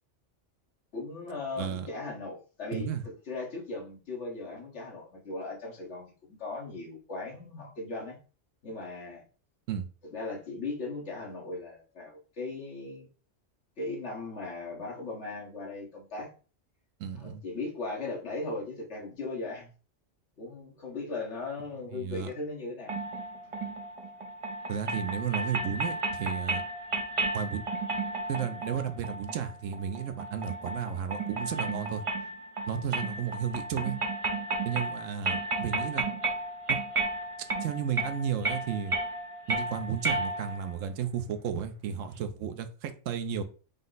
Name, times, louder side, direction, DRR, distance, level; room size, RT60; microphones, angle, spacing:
voice 1, 0.9-8.2 8.6-9.2 10.1-13.1 13.8-16.3 17.1-19.7 20.4-22.9 32.6-32.9, left 3 dB, 65° left, -3 dB, 1.7 m, -38 dB
voice 2, 1.6-1.9 2.7-3.0 9.7-9.9 17.0-17.4 21.9-22.3 24.7-26.6 27.3-27.6 28.3-32.0 32.7-34.0 34.6-36.1 36.7-36.8 37.6-38.9 39.5-43.4, right 8 dB, 90° right, 8 dB, 1.0 m, -33 dB
sound 1, 22.9-40.7, right 2 dB, 40° right, 0.5 m, -33 dB
5.2 x 2.1 x 3.9 m, 0.37 s
omnidirectional pair, 1.3 m